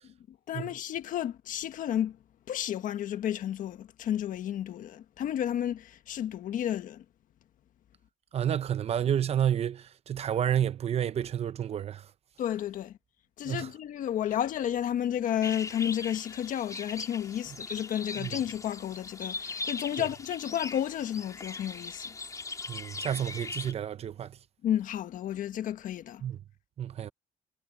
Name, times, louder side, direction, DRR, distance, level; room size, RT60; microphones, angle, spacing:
voice 1, 0.5-2.2 2.5-7.0 12.4-12.9 13.4-22.1 24.6-26.2, left 10 dB, 60° left, 1.5 m, -32 dB
voice 2, 8.3-12.0 13.5-13.7 18.2-18.3 20.0-20.1 22.7-24.4 26.2-26.4 26.8-27.1, right 9 dB, 40° right, 0.8 m, -30 dB
sound 1, 15.4-23.7, left 3 dB, 20° left, 4.0 m, -40 dB
cardioid pair, 125°, 15 cm